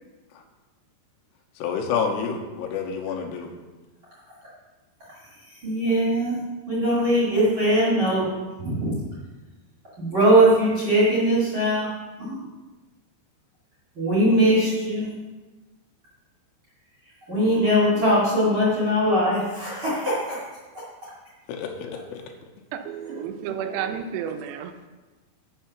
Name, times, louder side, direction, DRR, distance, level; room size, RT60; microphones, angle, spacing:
voice 1, 1.6-3.5 21.5-22.2, left 6 dB, 75° left, 2 dB, 2.7 m, -28 dB
voice 2, 5.6-6.4 6.7-8.3 8.6-9.0 10.0-11.9 12.2-12.5 14.0-15.1 17.3-20.4 20.7-20.8, right 1 dB, 40° right, -8 dB, 2.2 m, -21 dB
voice 3, 22.7-24.9, right 8 dB, 80° right, 7 dB, 2.5 m, -31 dB
8.4 x 5.7 x 5.7 m, 1.2 s
omnidirectional pair, 5.4 m